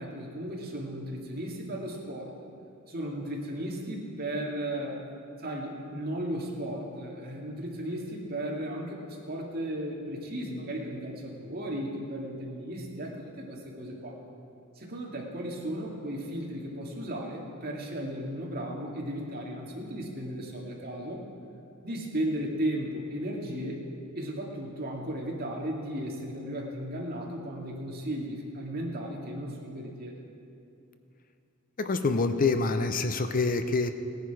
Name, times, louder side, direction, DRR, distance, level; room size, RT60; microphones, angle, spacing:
voice 1, 0.0-2.3 2.9-5.0 5.4-14.2 14.8-21.2 21.8-23.8 24.1-30.1, right 1 dB, 45° right, -2 dB, 2.2 m, -35 dB
voice 2, 31.8-33.9, left 3 dB, 40° left, 9 dB, 0.6 m, -26 dB
17.5 x 10.5 x 4.8 m, 2.6 s
head